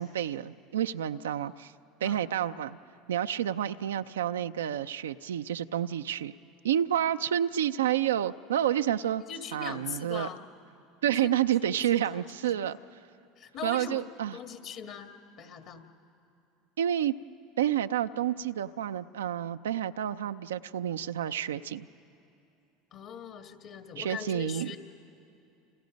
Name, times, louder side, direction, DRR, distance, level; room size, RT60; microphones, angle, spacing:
voice 1, 0.0-1.7 2.0-2.8 3.1-6.3 6.6-9.2 9.5-10.3 11.0-12.8 13.6-14.4 16.8-17.1 17.6-21.9 24.0-24.8, right 10 dB, 85° right, 10 dB, 0.5 m, -29 dB
voice 2, 9.3-10.4 11.1-11.8 12.1-12.5 13.4-14.0 14.3-15.1 15.4-15.8 22.9-24.8, left 7 dB, 55° left, 6 dB, 1.9 m, -41 dB
29.5 x 28.5 x 5.3 m, 2.8 s
hypercardioid pair, 85°, 0 cm